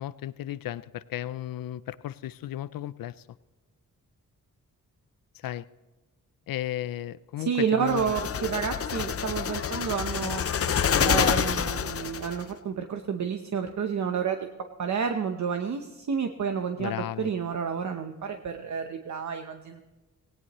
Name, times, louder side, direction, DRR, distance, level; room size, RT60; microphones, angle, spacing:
voice 1, 0.0-3.3 5.3-5.7 6.5-8.1 16.8-17.3, left 13 dB, 90° left, 17 dB, 0.5 m, -34 dB
voice 2, 7.4-10.5 11.0-14.5 14.8-19.8, right 6 dB, 55° right, 6 dB, 0.9 m, -30 dB
sound 1, 7.9-12.4, left 7 dB, 45° left, 0.6 m, -27 dB
18.0 x 18.0 x 3.1 m, 1.2 s
wide cardioid pair, 125°, 33 cm